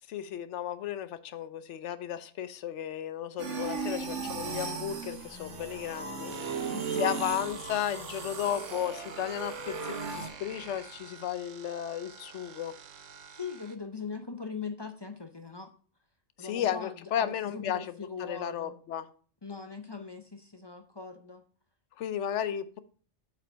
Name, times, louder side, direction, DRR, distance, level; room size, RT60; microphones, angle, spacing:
voice 1, 0.1-12.7 16.4-19.1 22.0-22.8, left 10 dB, 70° left, 13 dB, 0.9 m, -34 dB
sound 1, 3.4-10.3, right 4 dB, 70° right, 1.5 m, -36 dB
sound 2, 6.3-13.8, right 6 dB, 50° right, 0.7 m, -49 dB
voice 2, 6.7-7.2 13.3-15.7 16.4-18.8 19.4-21.4, left 5 dB, 35° left, 7 dB, 0.4 m, -41 dB
7.9 x 5.0 x 4.5 m, 0.43 s
omnidirectional pair, 1.3 m